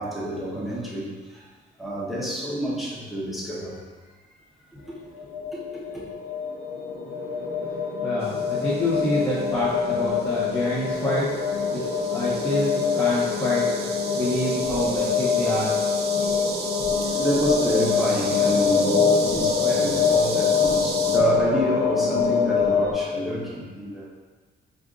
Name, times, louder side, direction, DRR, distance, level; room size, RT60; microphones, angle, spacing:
voice 1, 0.0-1.4 1.8-3.8 4.7-4.9 5.5-6.0 17.0-24.1, right 1 dB, ahead, -6 dB, 1.1 m, -28 dB
sound 1, 5.0-22.9, left 6 dB, 80° left, 0.8 m, -24 dB
voice 2, 7.7-11.4 11.7-13.7 14.1-15.7, left 1 dB, 15° left, -9 dB, 1.1 m, -27 dB
sound 2, 8.2-21.2, right 4 dB, 55° right, 0.6 m, -35 dB
4.4 x 2.6 x 3.9 m, 1.4 s
cardioid pair, 90°, 20 cm